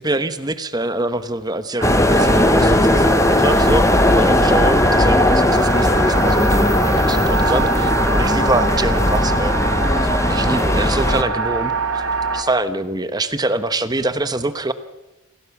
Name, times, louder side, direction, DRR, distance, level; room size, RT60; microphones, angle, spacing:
voice 1, 0.0-9.9 10.3-12.0 12.3-14.7, right 2 dB, 20° right, 11 dB, 1.0 m, -24 dB
sound 1, 1.8-11.2, left 1 dB, 15° left, 0.7 m, -17 dB
sound 2, 1.8-12.4, right 3 dB, 65° right, 2.5 m, -24 dB
27.0 x 17.5 x 7.2 m, 1.0 s
head